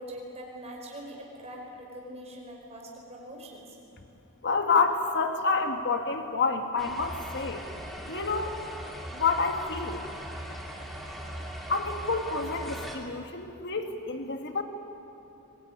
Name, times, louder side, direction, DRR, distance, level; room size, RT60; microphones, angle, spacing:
voice 1, 0.0-3.6, equal, 30° right, -1 dB, 5.0 m, -43 dB
voice 2, 4.4-7.7 8.1-8.6 9.1-10.0 11.7-14.6, left 4 dB, 50° left, 5 dB, 2.0 m, -28 dB
sound 1, 6.8-13.0, equal, ahead, 2.7 m, -40 dB
22.5 x 21.0 x 9.7 m, 2.8 s
head